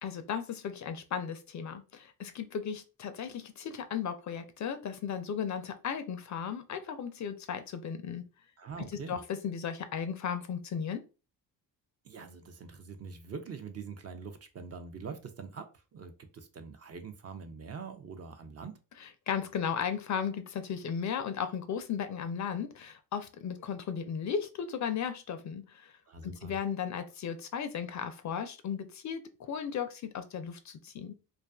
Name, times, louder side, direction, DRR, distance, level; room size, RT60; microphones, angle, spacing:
voice 1, 0.0-8.2 9.1-11.0 19.0-25.9 26.2-31.2, left 7 dB, 45° left, 0.4 m, -35 dB
voice 2, 8.6-9.2 12.0-18.8 26.1-26.6, right 5 dB, 40° right, 0.5 m, -44 dB
2.4 x 2.3 x 2.3 m
supercardioid pair, 65°, 41 cm